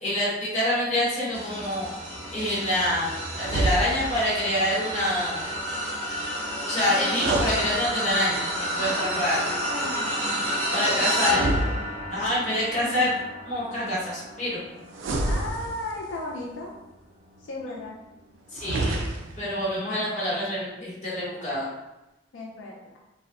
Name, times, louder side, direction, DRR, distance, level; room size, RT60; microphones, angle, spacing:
voice 1, 0.0-1.9 2.3-5.5 6.6-9.4 10.7-11.4 12.1-14.6 18.5-19.1 19.4-21.7, left 1 dB, 40° left, -8 dB, 1.0 m, -26 dB
sound 1, 1.3-16.8 17.3-17.6 18.9-19.0, equal, 35° right, 1.2 m, -31 dB
sound 2, 3.4-4.3 7.0-8.4 11.2-12.4 14.9-16.2 18.5-19.5, right 1 dB, 90° right, 0.4 m, -29 dB
voice 2, 8.7-11.8 12.8-13.1 15.2-16.7 17.4-18.0 22.3-23.0, left 2 dB, 85° left, -2 dB, 0.4 m, -36 dB
2.6 x 2.1 x 2.4 m, 0.98 s
head